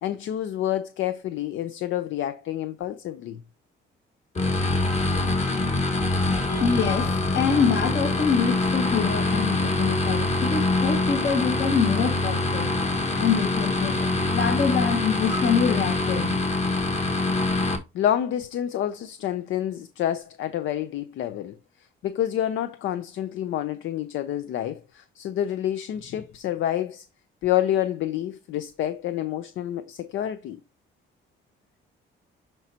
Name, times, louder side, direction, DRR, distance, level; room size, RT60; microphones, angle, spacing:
voice 1, 0.0-3.4 17.9-21.6 22.0-27.0 27.4-30.6, left 11 dB, 75° left, 0.6 m, -28 dB
sound 1, 4.4-17.8, left 2 dB, 35° left, 1.6 m, -24 dB
voice 2, 6.5-12.8 13.1-16.7, left 6 dB, 55° left, 1.8 m, -25 dB
11.0 x 4.5 x 2.9 m
cardioid pair, 90°, 20 cm